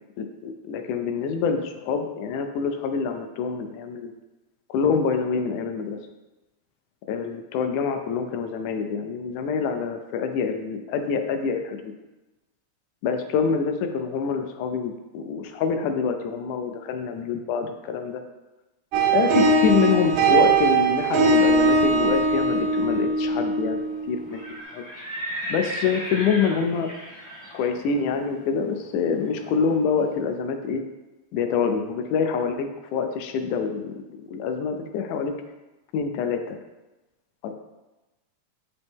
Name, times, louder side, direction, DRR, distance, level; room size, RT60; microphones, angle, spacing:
voice 1, 0.2-4.1 4.7-6.0 7.1-11.9 13.0-18.2 19.1-24.4 24.7-24.8 25.5-26.9 27.5-30.8 31.3-34.0 34.3-35.3 35.9-36.6 37.4-37.5, left 6 dB, 80° left, 6 dB, 2.0 m, -26 dB
sound 1, 18.9-24.4, right 3 dB, 85° right, 2.1 m, -21 dB
Livestock farm animals working animals, 24.1-30.0, equal, 15° left, 0.7 m, -36 dB
6.9 x 5.4 x 3.5 m, 1.1 s
omnidirectional pair, 3.6 m